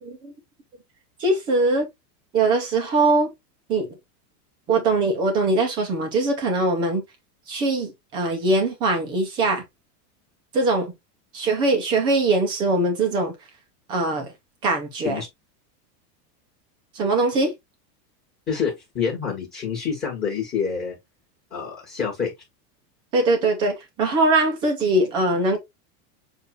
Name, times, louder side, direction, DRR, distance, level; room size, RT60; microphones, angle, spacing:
voice 1, 0.0-0.3 1.2-1.9 2.3-3.3 3.7-3.9 4.7-7.0 7.5-9.6 10.5-10.9 11.3-13.3 13.9-14.3 14.6-15.2 16.9-17.5 23.1-25.6, right 2 dB, 10° right, 0.3 m, -21 dB
voice 2, 18.5-20.9 21.5-22.3, left 6 dB, 20° left, 1.8 m, -27 dB
6.7 x 2.5 x 3.1 m
supercardioid pair, 165°, 49 cm